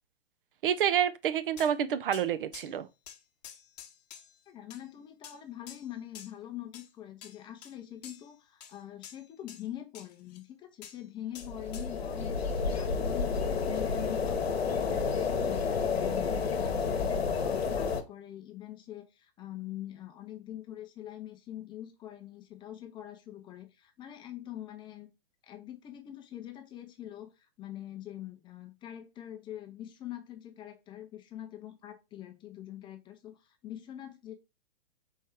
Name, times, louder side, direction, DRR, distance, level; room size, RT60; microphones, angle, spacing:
voice 1, 0.6-2.9, right 9 dB, 60° right, 0.6 m, -28 dB
sound 1, 1.6-1.7 2.1-2.3 2.5-2.7 3.1-4.4 4.7-4.9 5.2-5.4 5.7-6.3 6.7-6.9 7.2-7.8 8.0-8.3 8.6-9.7 9.9-10.4 10.8-11.0 11.3-11.9, left 9 dB, 40° left, 0.9 m, -49 dB
voice 2, 4.5-25.1 25.4-34.3, left 12 dB, 15° left, 0.5 m, -44 dB
sound 2, 11.4-18.0, left 5 dB, 80° left, 0.9 m, -30 dB
4.4 x 3.1 x 3.5 m
figure-of-eight pair, 115°, 30 cm